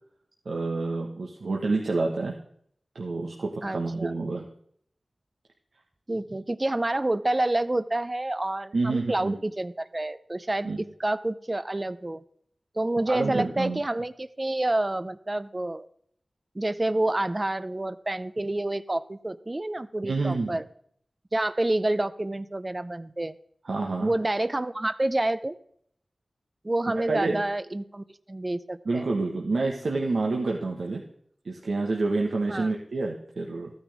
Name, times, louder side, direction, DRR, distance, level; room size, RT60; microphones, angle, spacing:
voice 1, 0.4-2.4 2.9-4.5 8.7-9.4 10.6-10.8 13.1-13.8 20.0-20.6 23.6-24.1 27.1-27.4 28.8-31.0 31.4-33.7, right 3 dB, 85° right, 0 dB, 1.3 m, -28 dB
voice 2, 3.6-4.1 6.1-12.2 12.7-15.9 16.5-20.6 21.3-23.4 24.0-25.6 26.6-29.1 32.5-32.7, right 1 dB, 30° right, 14 dB, 0.6 m, -28 dB
14.5 x 9.7 x 3.5 m, 0.65 s
wide cardioid pair, 75°, 0 cm